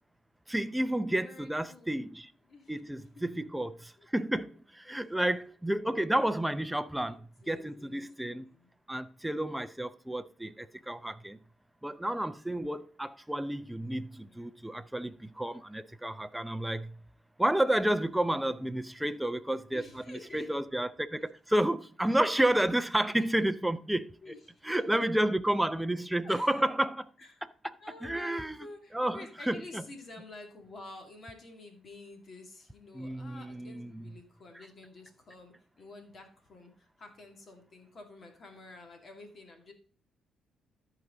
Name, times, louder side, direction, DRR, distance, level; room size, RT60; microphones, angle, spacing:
voice 1, 0.5-2.3 2.7-3.8 4.1-4.5 4.9-7.2 7.5-8.4 8.9-10.5 10.9-11.4 11.8-16.9 17.4-21.2 21.5-24.1 24.6-27.1 28.0-28.6 28.9-29.2 29.5-29.8 32.9-34.0, right 1 dB, 5° right, 0.5 m, -30 dB
voice 2, 1.1-2.1 2.5-2.8 3.3-3.4 4.0-4.1 4.8-5.0 7.1-8.7 14.2-14.5 19.7-20.6 21.1-21.3 24.2-25.3 26.2-26.7 27.2-27.4 27.8-39.7, left 2 dB, 45° left, 2.6 m, -50 dB
13.5 x 5.0 x 3.9 m
cardioid pair, 90°, 0 cm